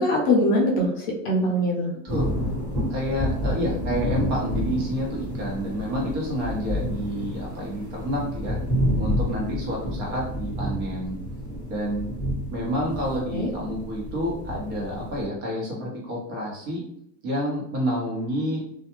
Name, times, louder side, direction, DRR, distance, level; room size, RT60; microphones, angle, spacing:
voice 1, 0.0-1.9 13.3-13.5, left 1 dB, 40° left, -2 dB, 0.6 m, -22 dB
sound 1, 2.1-15.3, equal, 20° right, 1.4 m, -29 dB
voice 2, 2.9-8.6 9.0-11.2 11.7-12.1 12.5-16.8 17.2-18.6, equal, 50° right, -3 dB, 1.1 m, -29 dB
2.4 x 2.3 x 2.9 m, 0.71 s
supercardioid pair, 165°, 48 cm